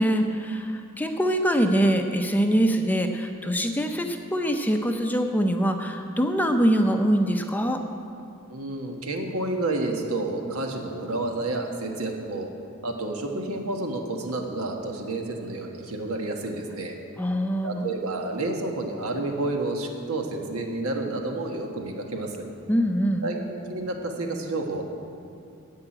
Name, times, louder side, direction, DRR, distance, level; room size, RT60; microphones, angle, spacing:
voice 1, 0.0-7.8 17.2-17.9 22.7-23.3, equal, 10° left, 5 dB, 0.6 m, -23 dB
voice 2, 8.5-12.5 12.8-17.0 17.6-22.4 23.2-24.8, right 2 dB, 85° right, 2 dB, 1.5 m, -30 dB
11.0 x 7.7 x 8.8 m, 2.5 s
head